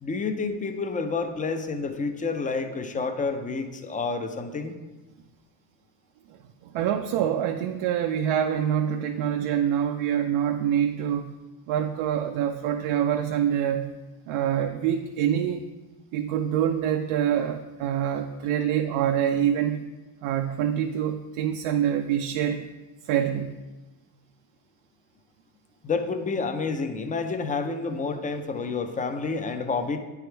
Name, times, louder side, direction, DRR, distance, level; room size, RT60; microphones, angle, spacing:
voice 1, 0.0-4.7 25.8-30.0, left 4 dB, 15° left, 7 dB, 0.5 m, -29 dB
voice 2, 6.6-11.3 11.7-14.0 14.3-15.6 16.1-19.8 20.2-22.7 23.0-23.6, right 9 dB, 70° right, 5 dB, 0.5 m, -25 dB
8.9 x 3.5 x 4.5 m, 1.2 s
cardioid pair, 105°, 49 cm